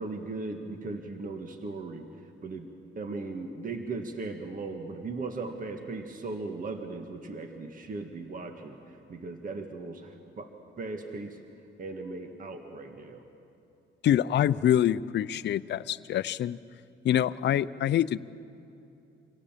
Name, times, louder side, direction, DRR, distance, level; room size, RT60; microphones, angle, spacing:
voice 1, 0.0-2.1 2.4-2.7 3.0-10.5 10.8-11.4 11.8-13.2, right 3 dB, 45° right, 5 dB, 1.7 m, -38 dB
voice 2, 14.0-16.6 17.0-18.2, left 11 dB, 60° left, 16 dB, 0.6 m, -25 dB
26.0 x 17.5 x 7.4 m, 2.8 s
cardioid pair, 90°, 20 cm